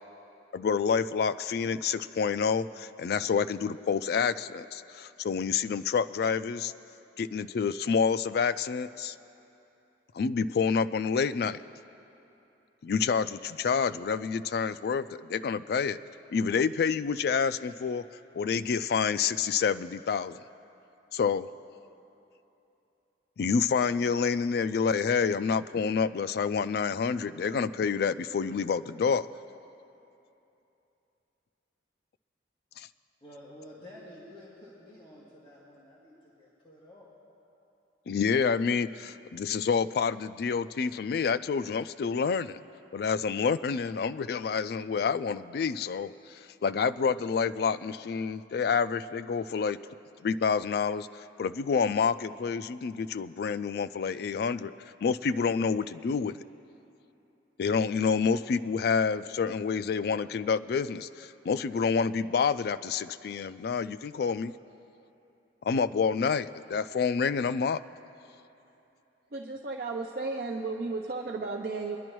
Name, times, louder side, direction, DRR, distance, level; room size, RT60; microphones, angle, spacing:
voice 1, 0.5-6.7 7.2-9.2 10.1-11.6 12.8-16.0 16.3-18.0 18.3-20.4 21.1-21.5 23.4-29.3 32.8-32.9 38.1-42.6 42.9-49.8 50.2-54.7 55.0-56.4 57.6-64.5 65.6-67.8, left 6 dB, 60° left, 13 dB, 0.3 m, -28 dB
voice 2, 33.2-37.1, left 1 dB, 30° left, -9 dB, 1.9 m, -50 dB
voice 3, 69.3-72.0, right 3 dB, 55° right, -1 dB, 0.6 m, -34 dB
24.0 x 10.5 x 3.1 m, 2.9 s
head